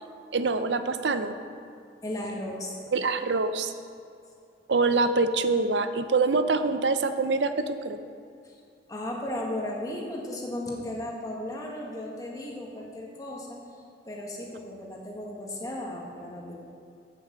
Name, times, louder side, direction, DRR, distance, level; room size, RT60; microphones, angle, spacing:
voice 1, 0.3-1.4 2.9-3.7 4.7-8.0, right 3 dB, 75° right, 10 dB, 0.6 m, -25 dB
voice 2, 2.0-2.8 8.4-8.5 8.9-13.6 14.0-16.5, left 1 dB, 20° left, -2 dB, 1.7 m, -35 dB
8.4 x 7.8 x 7.5 m, 2.5 s
head